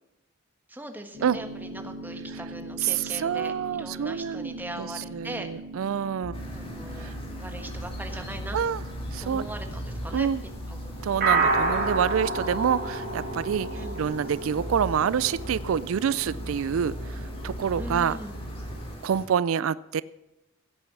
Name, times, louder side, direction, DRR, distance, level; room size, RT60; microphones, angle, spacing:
voice 1, 0.7-5.5 6.5-7.1 7.4-8.6 9.2-10.3 10.7-10.8 13.7-14.0 17.8-18.4, right 1 dB, 10° right, 5 dB, 1.4 m, -40 dB
sound 1, 1.1-18.9, right 3 dB, 50° right, 4.1 m, -34 dB
voice 2, 2.8-4.9 5.1-6.4 7.0-7.1 8.5-8.8 9.1-9.5 10.1-10.4 11.0-13.7 13.9-18.2 19.0-20.0, right 8 dB, 80° right, 19 dB, 0.4 m, -27 dB
sound 2, 6.2-19.0, equal, 85° left, 1.8 m, -39 dB
sound 3, 6.3-19.3, equal, 25° left, 2.6 m, -43 dB
16.5 x 8.6 x 6.1 m, 0.97 s
head